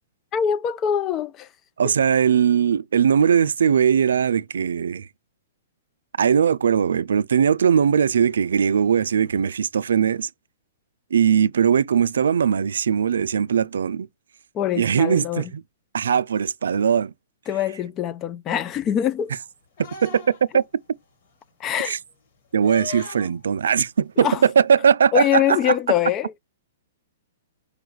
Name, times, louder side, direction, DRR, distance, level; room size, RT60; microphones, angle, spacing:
voice 1, 0.3-1.5 1.8-1.9 14.5-15.5 17.5-19.3 21.6-22.0 24.2-24.4 25.1-26.4, left 10 dB, 25° left, 0.3 m, -24 dB
voice 2, 1.8-5.1 6.2-10.3 11.1-14.1 14.8-15.6 15.9-17.1 20.0-20.6 21.9-22.0 22.5-25.7, right 7 dB, 85° right, 0.3 m, -20 dB
sound 1, 19.8-20.6 22.6-23.4 24.7-24.8, left 7 dB, 55° left, 1.8 m, -38 dB
5.0 x 2.3 x 4.5 m
hypercardioid pair, 150°, 0 cm